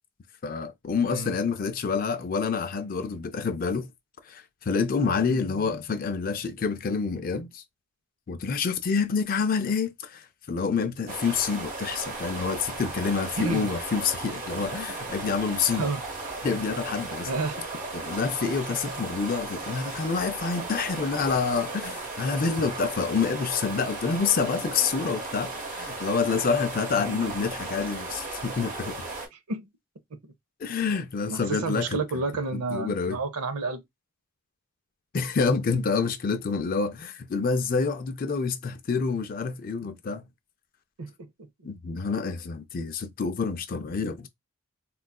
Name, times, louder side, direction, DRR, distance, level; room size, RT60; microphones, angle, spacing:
voice 1, 0.4-3.9 4.3-7.6 8.3-15.9 16.4-17.3 17.9-29.0 30.6-32.0 32.5-33.2 35.1-40.3 41.6-44.3, left 5 dB, 40° left, 0.3 m, -27 dB
sound 1, 11.1-29.3, right 3 dB, 35° right, 1.0 m, -36 dB
voice 2, 13.4-13.7 15.7-16.0 17.3-17.7 27.0-27.3 29.3-29.7 30.2-30.3 31.3-33.8 41.0-41.3, right 3 dB, 85° right, 0.6 m, -31 dB
3.8 x 2.3 x 2.2 m
head